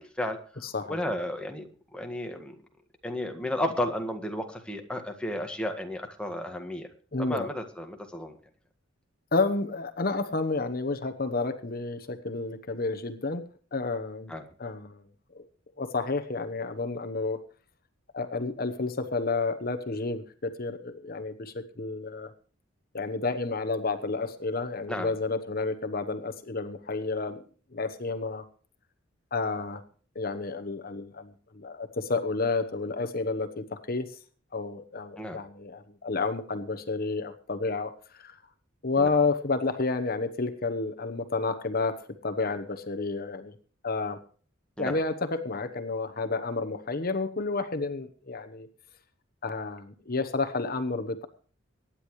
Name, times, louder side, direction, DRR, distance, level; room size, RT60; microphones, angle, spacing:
voice 1, 0.0-0.6 0.9-2.6 3.0-6.9 7.2-8.4 14.3-14.5 24.9-25.1 35.2-35.4 39.0-39.1 44.8-45.0, left 1 dB, 5° left, 4 dB, 1.7 m, -33 dB
voice 2, 0.6-1.0 7.1-7.5 9.3-13.4 13.7-14.3 14.6-15.0 15.3-15.4 15.8-17.4 18.1-22.3 22.9-27.4 27.7-28.4 29.3-29.8 30.1-34.1 34.5-38.4 38.8-43.5 43.8-44.2 44.8-48.7 49.4-51.3, left 3 dB, 50° left, 9 dB, 1.1 m, -30 dB
24.0 x 10.0 x 3.2 m, 0.42 s
head